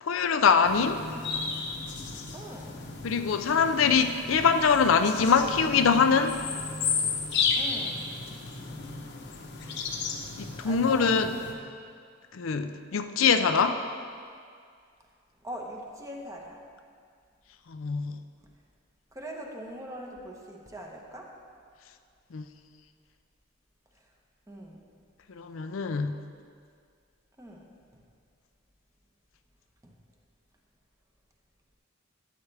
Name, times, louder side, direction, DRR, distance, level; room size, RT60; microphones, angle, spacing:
voice 1, 0.0-1.0 3.0-6.4 10.4-11.3 12.3-13.8 17.7-18.1 22.3-22.4 25.4-26.1, left 6 dB, 80° left, 8 dB, 0.5 m, -23 dB
sound 1, 0.6-11.5, left 5 dB, 60° left, 0.9 m, -33 dB
voice 2, 2.3-2.8 7.6-8.0 10.6-11.1 15.4-16.6 19.1-21.3 24.5-24.8 27.4-27.7 29.8-29.9, equal, 15° right, 0 dB, 1.0 m, -41 dB
12.5 x 8.5 x 3.4 m, 2.2 s
head